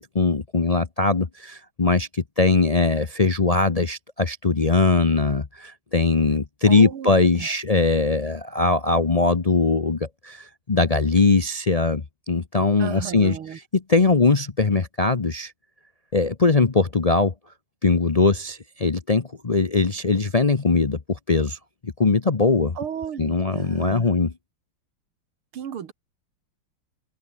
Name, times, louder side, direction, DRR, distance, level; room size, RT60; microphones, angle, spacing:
voice 1, 0.0-13.3 13.9-15.5 16.1-17.3 17.8-21.6 21.8-22.8 23.2-24.3, left 3 dB, 80° left, 0.3 m, -21 dB
voice 2, 6.6-7.9 12.8-13.6 22.8-24.1 25.5-25.9, right 8 dB, 80° right, 2.5 m, -35 dB
omnidirectional pair, 2.4 m